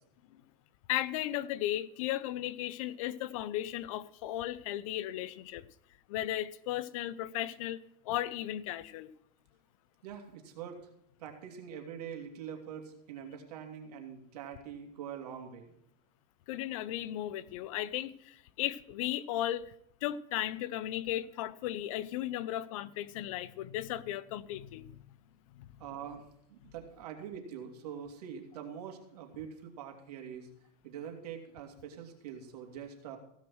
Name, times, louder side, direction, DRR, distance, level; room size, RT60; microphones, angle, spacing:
voice 1, 0.9-5.6 6.1-9.1 16.5-19.7 20.0-25.0 25.5-25.7, left 13 dB, 60° left, 0.6 m, -35 dB
voice 2, 10.0-10.9 11.2-15.7 25.8-26.2 26.5-30.5 30.8-33.2, right 8 dB, 80° right, 2.6 m, -44 dB
15.5 x 6.3 x 6.2 m
supercardioid pair, 160°, 20 cm